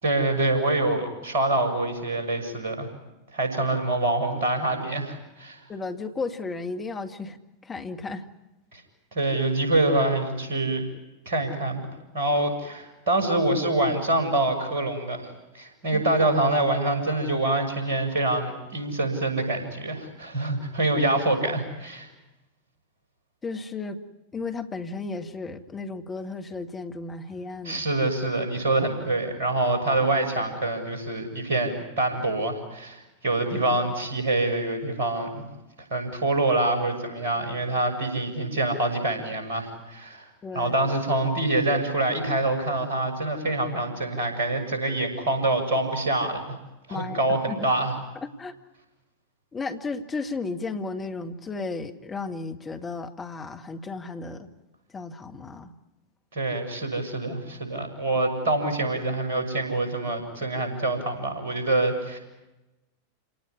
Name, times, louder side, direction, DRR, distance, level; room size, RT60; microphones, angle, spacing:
voice 1, 0.0-2.9 3.3-5.6 8.7-8.8 9.1-10.8 11.3-11.9 12.1-15.3 15.5-22.1 27.7-35.4 35.9-40.3 40.5-46.6 46.9-47.9 56.3-62.2, right 2 dB, 55° right, 6 dB, 6.8 m, -25 dB
voice 2, 5.7-7.4 7.6-8.3 15.9-16.0 23.4-24.0 24.3-27.8 40.4-40.7 46.9-47.7 48.2-48.6 49.5-54.5 54.9-55.7, left 3 dB, 15° left, 5 dB, 1.9 m, -34 dB
28.5 x 18.5 x 9.7 m, 1.0 s
figure-of-eight pair, 90°, 0 cm